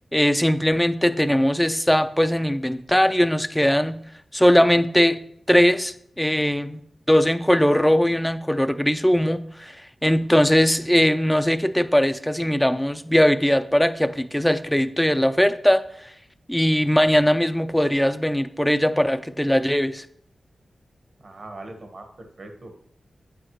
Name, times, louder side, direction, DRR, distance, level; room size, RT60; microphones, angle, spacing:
voice 1, 0.1-4.0 4.3-5.2 5.5-6.8 7.1-9.8 10.0-16.1 16.5-20.1, equal, 5° left, 12 dB, 0.5 m, -20 dB
voice 2, 21.2-22.7, right 2 dB, 55° right, 4 dB, 1.4 m, -41 dB
8.7 x 8.7 x 3.1 m, 0.69 s
cardioid pair, 70°, 0 cm